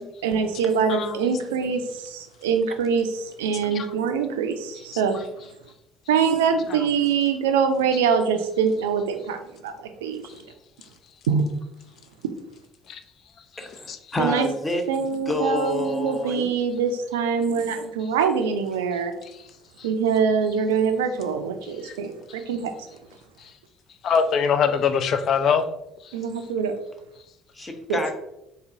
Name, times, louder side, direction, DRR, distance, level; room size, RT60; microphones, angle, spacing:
voice 1, 0.2-5.2 6.1-10.4 11.3-11.4 14.2-14.5 14.9-19.1 19.8-22.9 26.1-26.7 27.9-28.0, right 6 dB, 80° right, 7 dB, 0.3 m, -24 dB
voice 2, 13.6-16.5 27.5-28.1, left 1 dB, 25° left, 5 dB, 0.6 m, -28 dB
voice 3, 24.0-25.7, left 6 dB, 55° left, 9 dB, 0.3 m, -22 dB
4.0 x 2.7 x 2.6 m, 0.88 s
hypercardioid pair, 55°, 0 cm